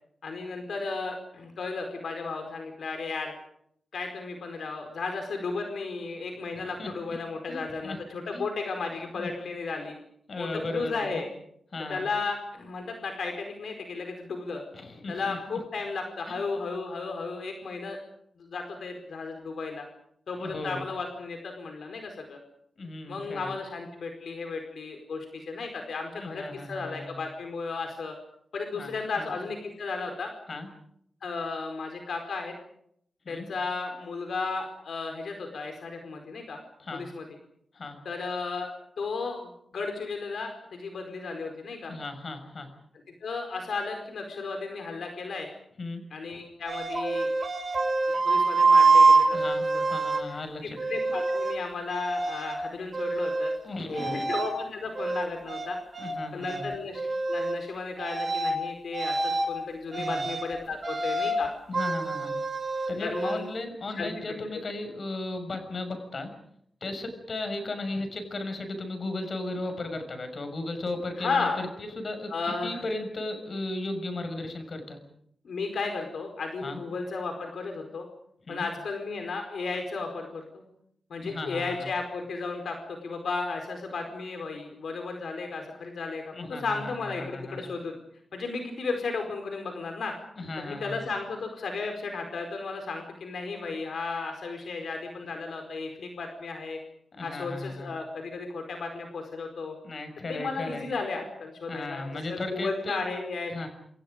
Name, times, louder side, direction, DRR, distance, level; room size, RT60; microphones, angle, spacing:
voice 1, 0.2-3.3 3.9-10.0 10.4-11.3 11.9-14.6 15.1-18.0 18.4-19.9 20.3-22.4 23.1-28.2 28.5-30.3 31.2-32.5 33.3-36.6 36.9-37.2 38.0-38.7 39.0-41.9 43.2-45.5 46.1-47.3 48.1-49.4 49.7-50.0 50.3-53.5 53.9-55.8 56.3-57.0 57.3-61.5 63.0-63.4 63.9-64.1 71.2-71.6 72.3-72.7 75.4-78.1 78.5-80.6 81.1-88.0 88.3-90.1 90.6-96.8 97.2-99.7 100.3-103.7, left 4 dB, 80° left, 4 dB, 4.7 m, -34 dB
voice 2, 6.5-6.9 7.5-8.0 8.3-8.5 9.1-9.3 10.3-11.2 11.7-12.0 14.7-15.6 16.3-16.4 20.4-20.9 22.8-23.5 26.2-27.2 28.7-29.3 30.5-30.7 33.2-33.5 36.8-37.0 37.7-38.0 41.9-42.7 45.8-46.0 49.3-50.8 53.6-54.3 56.0-56.7 59.9-60.3 61.7-62.3 62.9-66.3 66.8-72.3 72.6-75.0 76.6-76.8 78.5-78.7 81.2-81.9 86.3-87.7 90.4-91.1 97.2-97.9 99.8-100.8 101.7-103.0 103.5-103.7, left 2 dB, 50° left, 7 dB, 6.4 m, -36 dB
sound 1, 46.7-50.2 50.8-51.6 51.9-52.6 52.9-53.6 53.9-54.5 55.0-56.2 56.4-56.6 57.0-57.6 58.0-58.6 58.9-59.5 59.9-60.5 60.8-61.4 61.7-63.4, right 3 dB, 40° right, 5.2 m, -25 dB
28.0 x 28.0 x 5.2 m, 0.70 s
wide cardioid pair, 125°, 0 cm